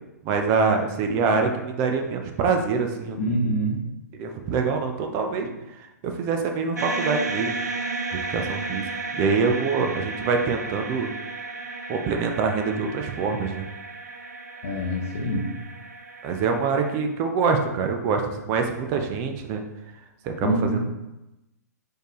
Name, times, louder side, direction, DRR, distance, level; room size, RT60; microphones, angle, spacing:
voice 1, 0.2-3.2 4.2-5.5 5.8-7.5 8.1-8.8 9.2-11.1 11.9-13.7 16.2-19.6 20.2-20.8, right 5 dB, 30° right, 4 dB, 0.7 m, -25 dB
voice 2, 3.2-3.9 5.4-5.5 14.6-15.5 20.4-20.9, equal, 50° left, -2 dB, 1.1 m, -25 dB
sound 1, 6.8-17.0, right 3 dB, 70° right, 0.9 m, -33 dB
6.6 x 4.8 x 3.1 m, 0.95 s
figure-of-eight pair, 115°, 9 cm